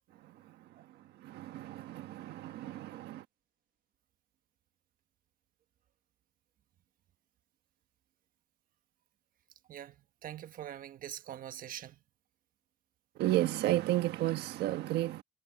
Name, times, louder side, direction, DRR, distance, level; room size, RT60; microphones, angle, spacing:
voice 1, 0.2-3.2 13.1-15.2, right 15 dB, 80° right, 1.3 m, -33 dB
voice 2, 9.7-12.0, right 11 dB, 55° right, 1.2 m, -44 dB
cardioid pair, 110°, 17 cm